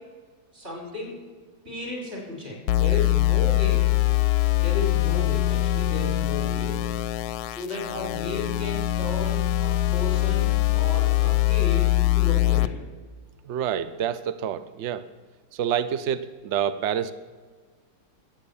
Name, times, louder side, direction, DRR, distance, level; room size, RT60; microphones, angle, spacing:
voice 1, 0.5-1.2 1.6-3.9 4.6-6.8 7.4-12.8, left 3 dB, 35° right, 0 dB, 4.7 m, -34 dB
sound 1, 2.7-12.7, left 16 dB, 70° left, 1.0 m, -23 dB
voice 2, 13.4-15.1 15.5-17.1, right 9 dB, 75° right, 13 dB, 0.6 m, -27 dB
13.5 x 8.2 x 8.4 m, 1.4 s
omnidirectional pair, 1.9 m